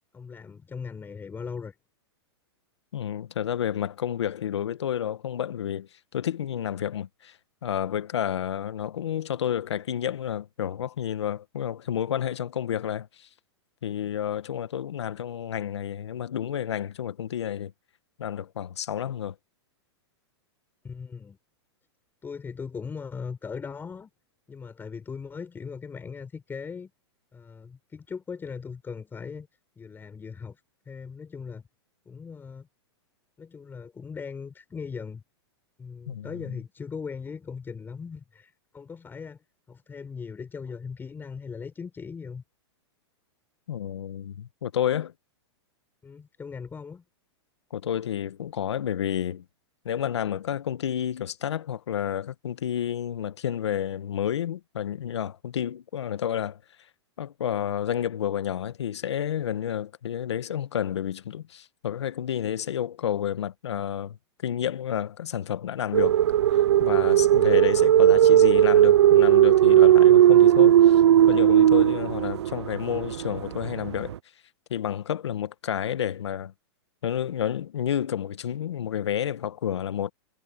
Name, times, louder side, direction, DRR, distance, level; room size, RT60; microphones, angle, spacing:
voice 1, 0.1-1.7 20.8-21.4 22.2-24.1 24.5-26.9 27.3-29.5 29.8-30.6 30.9-31.7 32.0-32.7 33.4-35.2 35.8-39.4 39.7-42.4 46.0-47.0, left 5 dB, 15° left, 4.8 m, -39 dB
voice 2, 2.9-7.4 7.6-13.3 13.8-17.7 18.2-19.3 36.1-36.4 43.7-45.1 47.7-49.4 49.8-56.6 57.2-64.2 64.4-66.2 66.5-71.0 71.3-74.1 74.7-76.5 77.0-80.1, left 9 dB, 85° left, 1.5 m, -30 dB
sound 1, 65.9-74.1, right 11 dB, 80° right, 0.7 m, -17 dB
hypercardioid pair, 135°, 14 cm